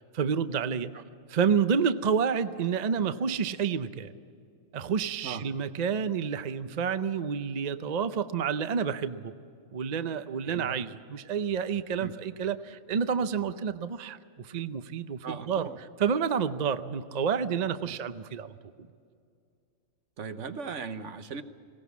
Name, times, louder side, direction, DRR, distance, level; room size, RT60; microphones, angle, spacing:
voice 1, 0.1-0.9 1.3-4.1 4.7-9.3 9.7-15.7 16.0-18.5, right 6 dB, 45° right, 11 dB, 0.6 m, -29 dB
voice 2, 10.4-10.8 12.0-12.1 15.2-15.8 17.8-17.9 20.2-21.4, right 5 dB, 65° right, 9 dB, 1.3 m, -38 dB
20.0 x 18.0 x 8.3 m, 2.4 s
omnidirectional pair, 1.4 m